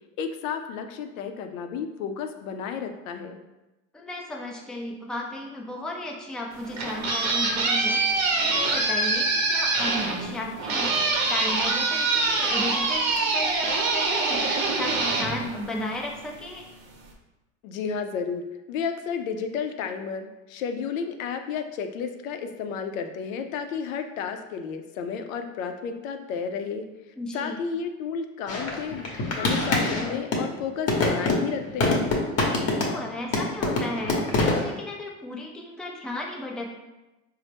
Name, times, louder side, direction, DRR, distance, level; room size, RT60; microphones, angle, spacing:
voice 1, 0.2-3.4 17.6-26.9 27.3-29.0 29.4-32.1, left 6 dB, 90° left, 6 dB, 0.5 m, -32 dB
voice 2, 3.9-16.6 27.2-27.6 32.8-34.2 34.6-36.7, left 1 dB, ahead, -1 dB, 0.4 m, -35 dB
sound 1, 6.5-16.2, right 3 dB, 45° right, 0.8 m, -25 dB
sound 2, 28.5-30.5 30.9-33.1 33.3-34.7, left 2 dB, 40° left, 0.9 m, -24 dB
4.0 x 2.0 x 3.3 m, 1.0 s
supercardioid pair, 95°, 39 cm